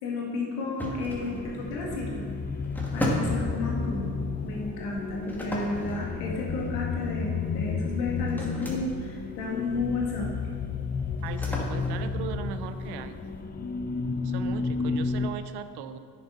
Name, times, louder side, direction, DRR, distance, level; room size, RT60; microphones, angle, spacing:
voice 1, 0.0-2.3 2.9-4.2 4.4-10.3, left 3 dB, 70° left, -2 dB, 2.0 m, -32 dB
sound 1, 0.8-13.4, equal, 5° left, 1.9 m, -37 dB
sound 2, 1.1-15.3, left 5 dB, 20° left, 0.5 m, -32 dB
voice 2, 11.2-13.2 14.2-16.0, right 9 dB, 55° right, 11 dB, 0.6 m, -38 dB
9.9 x 7.1 x 4.0 m, 2.2 s
figure-of-eight pair, 55°, 49 cm